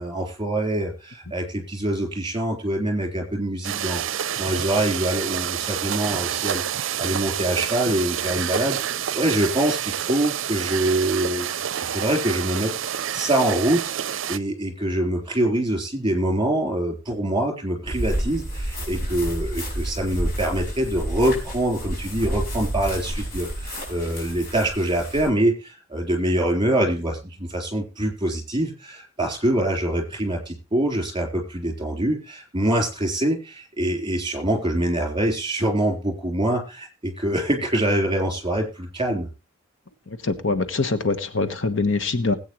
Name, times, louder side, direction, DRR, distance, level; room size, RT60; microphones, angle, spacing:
voice 1, 0.0-39.3, right 1 dB, 25° right, 2 dB, 3.8 m, -25 dB
sound 1, 3.6-14.4, right 9 dB, 75° right, 0.5 m, -28 dB
sound 2, 17.9-25.3, right 1 dB, 45° left, 5.7 m, -30 dB
voice 2, 40.2-42.4, left 3 dB, 70° left, 10 dB, 1.2 m, -23 dB
20.5 x 8.5 x 3.1 m, 0.31 s
head